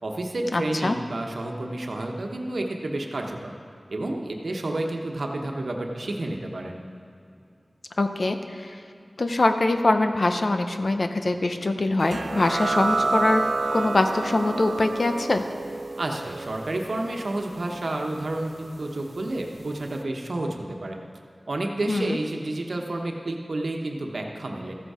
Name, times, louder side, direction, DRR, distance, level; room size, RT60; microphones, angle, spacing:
voice 1, 0.0-3.5 3.9-6.8 16.0-21.0 21.5-24.7, right 2 dB, 85° right, 1 dB, 1.1 m, -30 dB
voice 2, 0.5-0.9 8.0-8.7 9.2-13.4 13.7-15.4 21.9-22.2, left 2 dB, 70° left, 7 dB, 0.7 m, -23 dB
sound 1, 12.1-19.3, right 3 dB, 70° right, 0.5 m, -30 dB
14.5 x 8.1 x 5.0 m, 2.5 s
wide cardioid pair, 55°, 0 cm